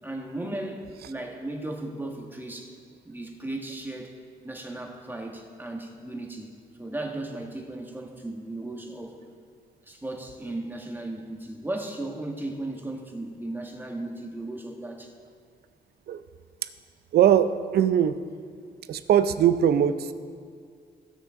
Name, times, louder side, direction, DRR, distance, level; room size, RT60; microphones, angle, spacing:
voice 1, 0.0-2.7 3.0-4.1 4.4-6.5 6.8-9.2 9.8-15.1, right 2 dB, 10° right, 1 dB, 1.7 m, -36 dB
voice 2, 17.1-18.1 18.9-20.1, right 9 dB, 75° right, 12 dB, 0.6 m, -21 dB
16.5 x 6.5 x 3.8 m, 2.2 s
cardioid pair, 80°, 16 cm